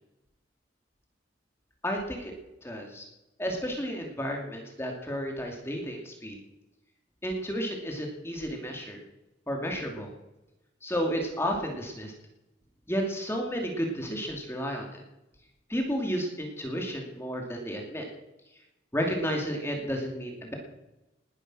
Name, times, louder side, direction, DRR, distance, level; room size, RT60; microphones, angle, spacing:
voice 1, 1.8-2.3 2.6-3.1 3.4-6.4 7.2-9.0 9.5-10.1 10.8-12.1 12.9-15.0 15.7-18.1 18.9-20.5, equal, 10° left, 1 dB, 2.6 m, -32 dB
19.5 x 10.5 x 6.2 m, 0.95 s
head